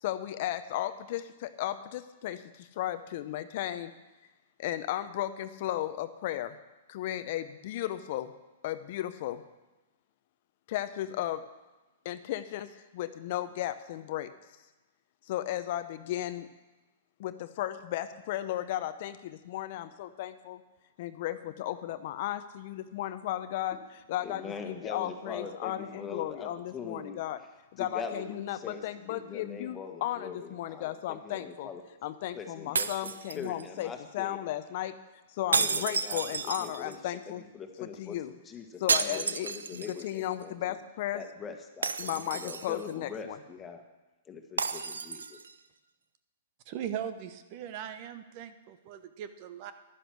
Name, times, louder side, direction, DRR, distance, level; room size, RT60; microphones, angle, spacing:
voice 1, 0.0-3.9 4.6-6.6 6.9-8.3 8.6-9.4 10.7-11.4 12.0-14.3 15.3-16.5 17.2-20.6 21.0-23.8 24.1-27.4 27.7-31.7 32.0-35.0 35.3-37.4 37.8-38.3 38.8-41.2 42.0-43.4, left 13 dB, 55° left, 11 dB, 0.6 m, -35 dB
voice 2, 24.2-27.2 27.8-31.8 32.3-32.9 33.3-34.4 35.5-40.8 41.1-43.8 44.2-45.4, left 5 dB, 20° left, 4 dB, 1.6 m, -42 dB
sound 1, 32.7-33.8 35.5-37.1 38.9-40.1 40.4-40.5 41.8-42.9 44.6-45.5, right 5 dB, 90° right, 0.6 m, -31 dB
voice 3, 46.7-49.7, right 9 dB, 45° right, 11 dB, 0.9 m, -39 dB
11.0 x 10.0 x 6.3 m, 1.1 s
hypercardioid pair, 125°, 0 cm